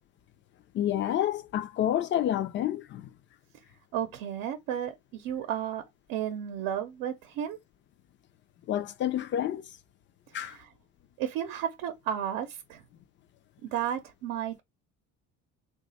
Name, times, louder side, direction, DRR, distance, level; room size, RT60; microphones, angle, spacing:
voice 1, 0.7-3.1 8.7-9.7 10.3-10.6, left 11 dB, 35° left, 0.4 m, -29 dB
voice 2, 3.9-5.8 6.1-7.6 10.3-10.7 11.2-12.8 13.6-14.6, right 10 dB, 85° right, 0.7 m, -33 dB
3.1 x 2.3 x 4.0 m
cardioid pair, 140°, 33 cm